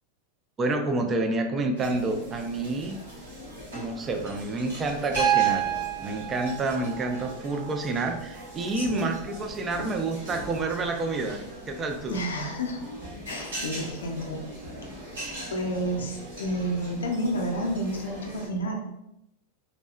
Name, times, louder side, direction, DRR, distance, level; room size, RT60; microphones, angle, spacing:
voice 1, 0.6-3.0 3.7-5.7 6.0-11.4 11.7-12.2, right 2 dB, 25° right, 4 dB, 0.4 m, -29 dB
sound 1, 1.8-18.5, equal, 80° right, 1.0 m, -41 dB
Piano, 5.2-9.2 10.7-10.8, right 11 dB, 5° right, 0.8 m, -29 dB
voice 2, 8.7-9.1 12.1-12.8 13.3-14.4 15.5-18.8, equal, 85° left, 2 dB, 0.5 m, -30 dB
2.7 x 2.1 x 2.4 m, 0.84 s
hypercardioid pair, 100°, 0 cm